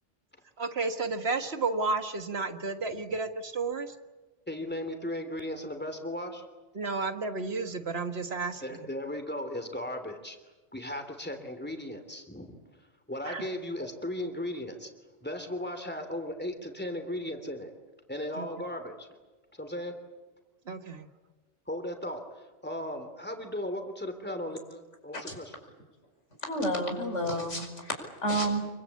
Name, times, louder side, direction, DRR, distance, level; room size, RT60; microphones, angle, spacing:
voice 1, 0.6-3.9 6.7-8.9 13.2-13.5 18.3-18.5 20.6-21.1, right 3 dB, 60° right, 8 dB, 1.8 m, -32 dB
voice 2, 4.5-6.5 8.6-10.4 10.7-12.6 13.1-14.9 15.2-17.7 18.1-19.1 19.6-19.9 21.7-22.2 22.6-25.5, left 1 dB, 10° left, 6 dB, 3.1 m, -36 dB
voice 3, 26.4-28.6, right 1 dB, 90° left, 3 dB, 5.6 m, -30 dB
26.5 x 23.5 x 8.4 m, 1.2 s
omnidirectional pair, 1.2 m